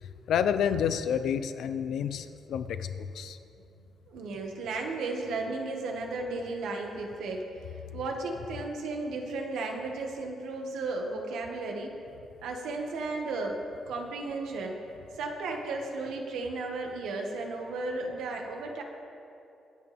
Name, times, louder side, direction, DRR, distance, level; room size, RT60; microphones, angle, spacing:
voice 1, 0.3-3.4, left 8 dB, 65° left, 11 dB, 0.6 m, -29 dB
voice 2, 4.1-7.5 7.9-12.0 12.4-14.8 15.1-18.8, right 3 dB, 85° right, 2 dB, 1.8 m, -34 dB
24.5 x 8.3 x 3.6 m, 2.7 s
cardioid pair, 175°, 0 cm